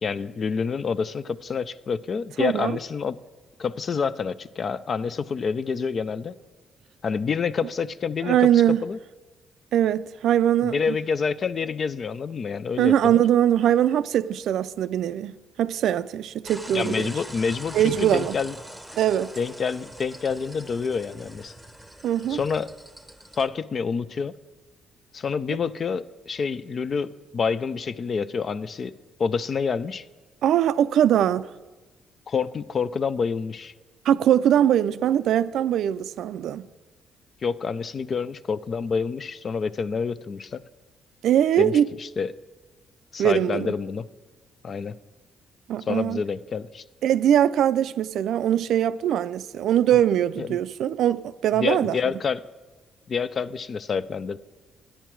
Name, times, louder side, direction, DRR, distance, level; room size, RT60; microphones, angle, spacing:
voice 1, 0.0-3.2 3.6-6.3 7.0-9.0 10.6-13.2 16.7-18.5 19.4-21.5 22.3-22.7 23.4-24.3 25.1-28.9 29.2-30.0 32.3-33.7 37.4-40.6 41.6-42.3 43.1-44.1 44.6-45.0 45.9-46.8 50.4-50.6 51.5-52.4 53.1-54.4, left 5 dB, 45° left, 0.4 m, -28 dB
voice 2, 2.4-2.7 8.2-8.8 9.7-11.0 12.8-17.1 17.7-18.4 19.0-19.4 22.0-22.4 30.4-31.5 34.1-36.6 41.2-41.9 43.2-43.8 45.7-46.2 47.0-52.0, right 10 dB, 75° right, 0.3 m, -21 dB
sound 1, 16.4-23.5, right 1 dB, ahead, 1.0 m, -42 dB
10.0 x 10.0 x 4.6 m
cardioid pair, 90°, 0 cm